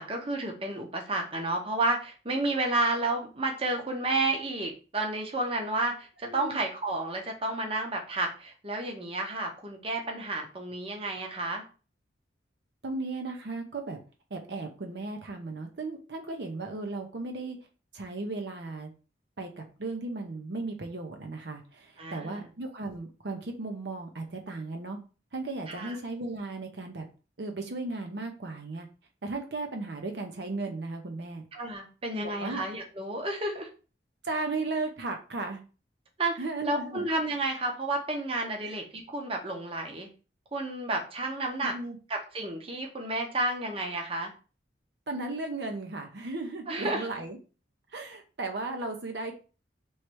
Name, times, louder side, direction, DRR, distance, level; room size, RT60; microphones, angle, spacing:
voice 1, 0.0-11.6 22.0-22.5 25.7-26.0 31.5-33.7 36.2-40.1 40.5-41.7 42.1-44.3 46.7-47.0, right 2 dB, 30° right, 2 dB, 0.8 m, -31 dB
voice 2, 6.2-6.6 12.8-14.0 14.3-17.6 17.9-18.9 19.4-25.0 25.3-27.1 27.4-28.9 29.2-31.4 32.2-32.6 34.2-35.6 36.4-37.0 38.6-38.7 41.7-42.0 45.1-47.4 47.9-49.3, right 3 dB, 65° right, 3 dB, 0.7 m, -35 dB
3.2 x 3.2 x 4.5 m, 0.35 s
head